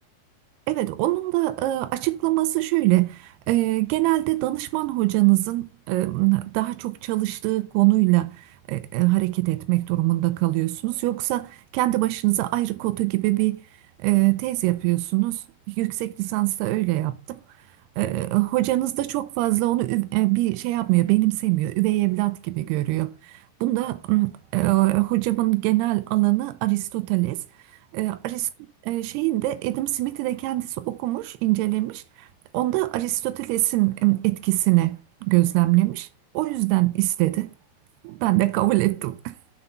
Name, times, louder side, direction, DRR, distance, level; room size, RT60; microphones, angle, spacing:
voice 1, 0.7-8.3 8.7-13.6 14.0-17.4 18.0-27.4 27.9-28.5 28.8-32.0 32.5-36.1 36.3-37.5 38.0-39.3, right 19 dB, 85° right, 2.4 m, -23 dB
6.8 x 5.9 x 5.6 m
omnidirectional pair, 5.2 m